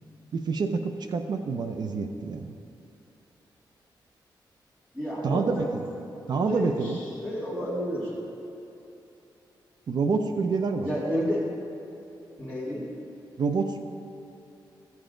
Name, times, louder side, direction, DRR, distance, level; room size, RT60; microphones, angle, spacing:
voice 1, 0.3-2.5 5.2-5.8 6.3-7.0 9.9-10.9 13.4-13.8, right 4 dB, 60° right, 7 dB, 0.5 m, -27 dB
voice 2, 4.9-5.8 6.5-8.1 10.8-11.4 12.4-12.9, equal, 10° right, -9 dB, 2.2 m, -30 dB
14.0 x 7.1 x 3.8 m, 2.9 s
wide cardioid pair, 110°, 8 cm